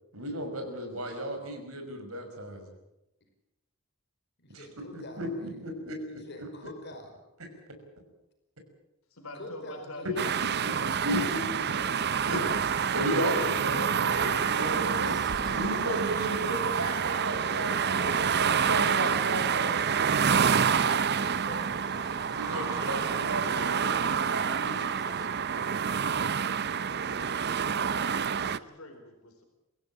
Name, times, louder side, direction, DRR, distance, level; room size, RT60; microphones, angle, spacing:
voice 1, 0.1-2.7 4.5-4.7 4.9-6.7 11.0-11.5 12.2-15.1 15.5-18.0 18.4-19.7 22.3-24.8, right 1 dB, 80° right, 5 dB, 5.8 m, -34 dB
voice 2, 4.4-5.2 6.1-7.1 9.3-12.0 14.4-16.6 17.3-19.3 19.6-21.9 24.4-25.3, left 1 dB, 50° left, 5 dB, 5.1 m, -45 dB
voice 3, 9.1-10.6 26.7-29.4, left 1 dB, 75° left, 5 dB, 4.0 m, -47 dB
sound 1, 10.2-28.6, right 7 dB, 50° right, 0.7 m, -28 dB
sound 2, 13.5-25.3, right 2 dB, 20° right, 1.9 m, -46 dB
24.0 x 16.0 x 8.6 m, 0.92 s
head